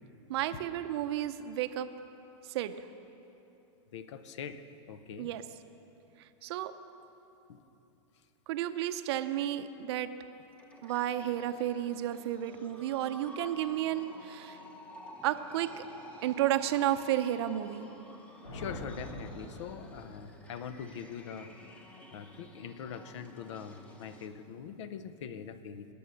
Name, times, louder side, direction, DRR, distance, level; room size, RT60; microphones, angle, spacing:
voice 1, 0.3-1.9 2.4-2.8 5.2-5.4 6.2-6.7 8.5-10.1 10.8-14.6 15.2-15.8 16.2-17.9, right 12 dB, 60° right, 10 dB, 0.6 m, -32 dB
voice 2, 3.9-5.3 7.5-7.6 18.5-21.5 22.1-25.9, left 7 dB, 70° left, 12 dB, 0.8 m, -43 dB
sound 1, 10.5-24.3, left 1 dB, 10° left, 0.9 m, -51 dB
sound 2, 18.4-20.4, equal, 90° left, 3.3 m, -44 dB
20.5 x 7.0 x 6.4 m, 3.0 s
supercardioid pair, 155°, 16 cm